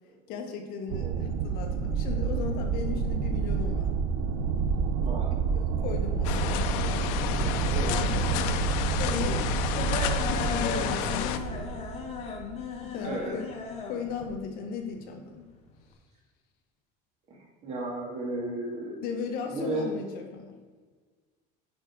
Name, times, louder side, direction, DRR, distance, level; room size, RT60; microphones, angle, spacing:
voice 1, 0.3-3.9 5.5-7.1 7.9-8.5 9.0-9.5 10.3-11.8 12.8-13.4 13.8-15.5 19.0-20.6, left 6 dB, 55° left, 4 dB, 1.3 m, -36 dB
sound 1, 0.9-13.0 14.1-14.3, right 6 dB, 60° right, 0.7 m, -29 dB
voice 2, 5.0-5.3 7.6-8.7 13.0-13.3 17.3-19.2 19.5-20.0, right 1 dB, 35° right, -3 dB, 2.6 m, -35 dB
sound 2, 5.9-15.9, left 5 dB, 35° left, 1.3 m, -38 dB
sound 3, 6.2-11.4, left 9 dB, 85° left, 0.7 m, -31 dB
9.9 x 5.1 x 4.6 m, 1.4 s
cardioid pair, 165°, 19 cm